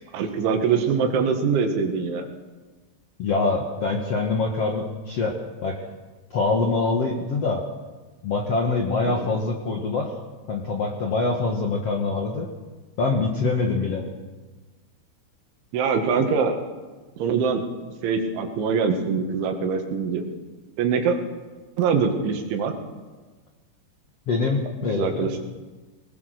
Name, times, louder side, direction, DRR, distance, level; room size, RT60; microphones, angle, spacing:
voice 1, 0.1-2.3 9.0-9.3 15.7-16.6 17.2-17.6 18.0-20.2 20.8-21.2 21.8-22.7 25.0-25.3, right 5 dB, 80° right, 4 dB, 4.2 m, -23 dB
voice 2, 3.2-5.3 5.6-5.8 6.3-7.6 8.2-10.1 10.5-12.5 13.0-14.0 24.3-25.3, left 3 dB, 75° left, 1 dB, 1.4 m, -24 dB
20.5 x 20.0 x 6.6 m, 1.3 s
omnidirectional pair, 5.4 m